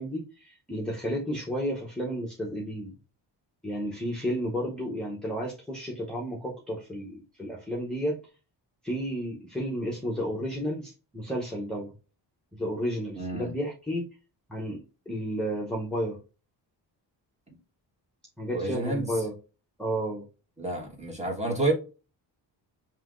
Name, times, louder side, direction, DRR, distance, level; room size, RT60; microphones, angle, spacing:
voice 1, 0.0-3.0 3.6-8.2 8.8-11.9 12.5-14.1 14.5-16.2 18.4-19.3 19.8-20.2, equal, ahead, 0.8 m, -32 dB
voice 2, 13.2-13.5 18.5-19.2 20.6-21.7, right 2 dB, 15° right, 1.4 m, -29 dB
5.6 x 2.9 x 2.5 m
wide cardioid pair, 140°, 43 cm